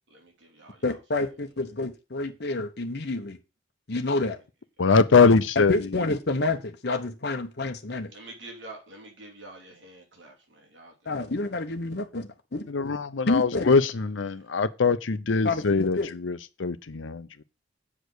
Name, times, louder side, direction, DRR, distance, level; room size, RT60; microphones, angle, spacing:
voice 1, 0.1-1.0 8.1-11.1 13.6-13.8, right 2 dB, 70° right, 3.1 m, -47 dB
voice 2, 0.8-3.4 3.9-4.4 5.2-8.1 11.1-12.7 13.3-13.7 15.4-16.1, left 2 dB, 60° left, 1.1 m, -29 dB
voice 3, 4.8-5.7 12.7-17.3, left 4 dB, 85° left, 0.7 m, -22 dB
7.8 x 5.1 x 6.3 m
head